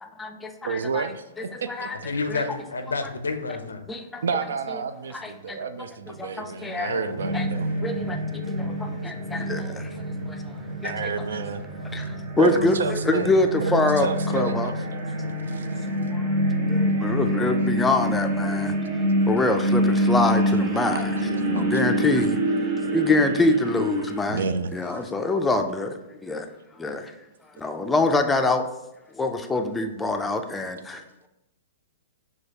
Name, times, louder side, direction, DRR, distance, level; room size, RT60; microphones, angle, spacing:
voice 1, 0.0-1.1 1.5-2.0 2.3-2.4 3.9-4.2 5.1-5.6 6.2-6.9 7.3-7.5 7.8-11.1 11.9-12.8 13.1-14.1 14.3-14.7 16.1-16.3 16.7-18.7 19.3-21.1 21.5-22.4 22.9-24.5 24.7-26.5 26.8-27.1 27.6-28.7 29.1-31.0, left 3 dB, 10° left, 5 dB, 0.4 m, -25 dB
voice 2, 0.6-2.1 4.2-7.7 10.8-11.6 12.4-13.3 13.6-15.7 24.3-24.8, right 5 dB, 70° right, 11 dB, 0.3 m, -30 dB
voice 3, 2.0-3.8 6.8-7.4, left 3 dB, 85° left, 7 dB, 0.4 m, -30 dB
sound 1, 7.2-24.2, equal, 50° right, 0.7 m, -26 dB
6.2 x 2.3 x 2.9 m, 0.91 s
hypercardioid pair, 115°, 0 cm